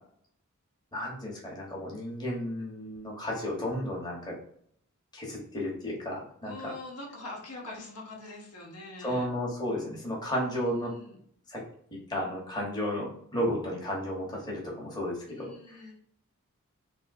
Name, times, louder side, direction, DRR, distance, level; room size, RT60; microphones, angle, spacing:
voice 1, 0.9-4.4 5.1-6.7 9.0-10.9 11.5-11.6 12.1-15.8, equal, 20° left, -3 dB, 1.0 m, -33 dB
voice 2, 6.5-9.3 10.5-11.2 15.3-15.9, left 2 dB, 80° left, -1 dB, 1.0 m, -43 dB
3.5 x 2.7 x 2.6 m, 0.64 s
head